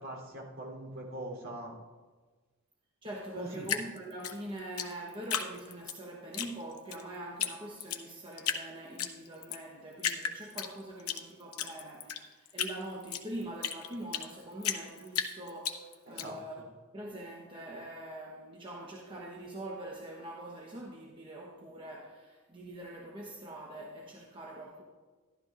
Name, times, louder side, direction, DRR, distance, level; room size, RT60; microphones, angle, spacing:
voice 1, 0.0-1.7 3.3-3.7 16.0-16.6, right 1 dB, 65° right, -2 dB, 3.3 m, -42 dB
voice 2, 3.0-16.6 16.9-24.8, right 1 dB, 25° right, -2 dB, 1.0 m, -43 dB
Drip, 3.6-6.0 6.3-7.0 7.4-7.5 7.8-8.6 9.0-9.6 10.0-11.2 11.5-14.3 14.6-16.2, left 8 dB, 90° left, 0.8 m, -34 dB
12.5 x 12.5 x 2.5 m, 1.3 s
head